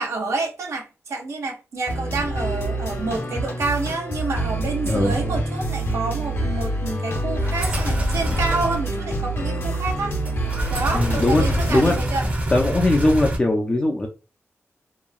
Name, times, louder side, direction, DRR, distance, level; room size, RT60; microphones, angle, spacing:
voice 1, 0.0-10.2 10.7-12.2, right 3 dB, 75° right, 0.7 m, -28 dB
sound 1, 1.9-12.0, right 1 dB, 55° left, 0.9 m, -26 dB
voice 2, 4.8-5.2 10.9-12.0 12.2-14.1, left 2 dB, 20° left, 0.3 m, -20 dB
sound 2, 7.4-8.8 10.3-13.4, right 1 dB, 30° right, 0.6 m, -26 dB
2.9 x 2.2 x 2.3 m
wide cardioid pair, 165°, 5 cm